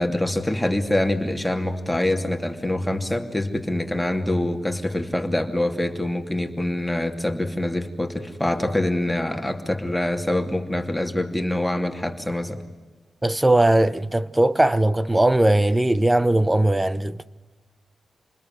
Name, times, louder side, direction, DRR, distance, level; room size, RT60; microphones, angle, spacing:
voice 1, 0.0-12.6, left 1 dB, 5° left, 2.8 m, -25 dB
voice 2, 13.2-17.2, right 1 dB, 15° right, 1.0 m, -19 dB
28.0 x 20.5 x 9.5 m
cardioid pair, 85°, 0 cm